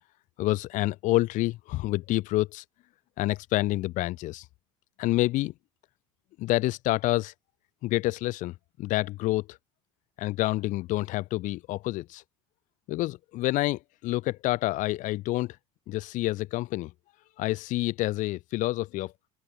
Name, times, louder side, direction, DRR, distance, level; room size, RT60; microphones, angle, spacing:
voice 1, 0.4-2.6 3.2-4.4 5.0-5.5 6.4-7.3 7.8-8.5 8.8-9.6 10.2-12.2 12.9-15.6 15.9-16.9 17.4-19.1, left 18 dB, 50° left, 3.9 m, -28 dB
open air
figure-of-eight pair, 65°, 16 cm